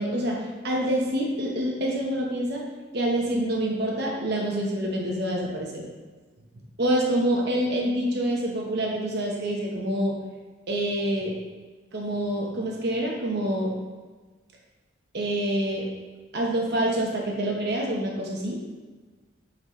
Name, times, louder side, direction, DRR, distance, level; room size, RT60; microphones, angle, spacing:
voice 1, 0.0-2.6 2.9-5.9 6.8-10.2 10.7-11.3 11.9-13.7 15.1-15.9 16.3-18.6, right 1 dB, 60° right, -1 dB, 0.9 m, -26 dB
8.6 x 4.1 x 3.1 m, 1.4 s
head